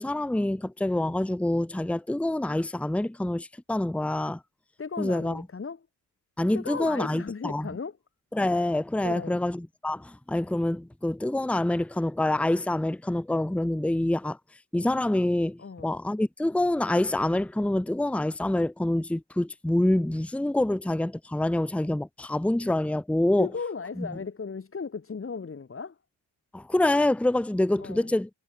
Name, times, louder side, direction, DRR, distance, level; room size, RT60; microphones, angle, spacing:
voice 1, 0.0-4.4 5.0-5.4 6.4-7.7 8.3-14.4 14.7-23.5 24.0-24.1 26.5-28.3, left 1 dB, 5° left, 1.1 m, -26 dB
voice 2, 4.8-5.9 6.5-8.0 9.0-9.4 15.6-15.9 23.4-26.0 27.8-28.1, left 5 dB, 30° left, 4.0 m, -36 dB
cardioid pair, 115°, 45 cm